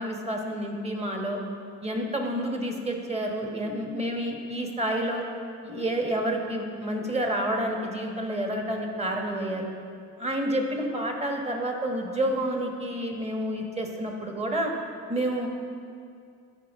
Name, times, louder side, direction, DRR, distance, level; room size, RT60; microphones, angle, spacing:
voice 1, 0.0-1.4 1.8-5.2 5.6-9.7 10.2-14.7 15.1-15.5, right 1 dB, 20° right, 1 dB, 1.3 m, -29 dB
13.5 x 4.8 x 3.6 m, 2.3 s
cardioid pair, 90°, 30 cm